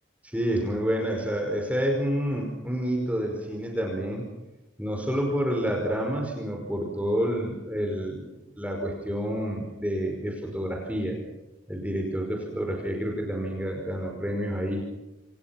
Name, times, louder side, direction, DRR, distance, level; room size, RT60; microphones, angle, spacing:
voice 1, 0.2-4.3 4.8-8.3 8.6-11.2 11.7-14.9, equal, 5° right, 1 dB, 5.3 m, -28 dB
28.5 x 28.5 x 6.0 m, 1.0 s
head